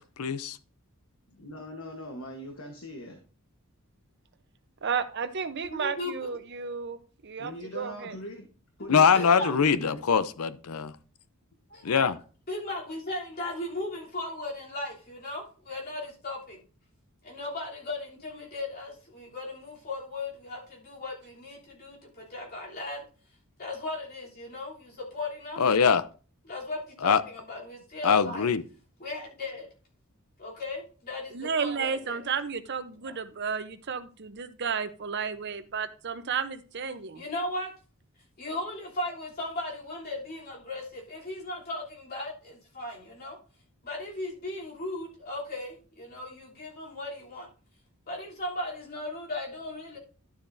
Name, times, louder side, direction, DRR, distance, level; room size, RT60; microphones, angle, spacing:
voice 1, 0.2-0.6 8.9-10.9 11.8-12.1 25.6-26.0 27.0-27.2 28.0-28.6, left 6 dB, 90° left, 0.6 m, -22 dB
voice 2, 1.3-3.2 7.4-8.5 8.8-10.0, left 1 dB, 65° left, 1.3 m, -41 dB
voice 3, 4.8-8.2 31.3-37.2, right 6 dB, 55° right, 0.7 m, -32 dB
voice 4, 5.7-6.3 8.9-9.5 11.7-12.1 12.5-16.6 17.2-23.0 23.6-25.6 26.4-28.5 29.0-29.7 30.4-32.2 33.0-33.1 37.1-37.7 38.4-43.4 43.8-47.5 48.1-50.0, left 2 dB, 45° left, 3.2 m, -37 dB
11.5 x 7.1 x 2.6 m
head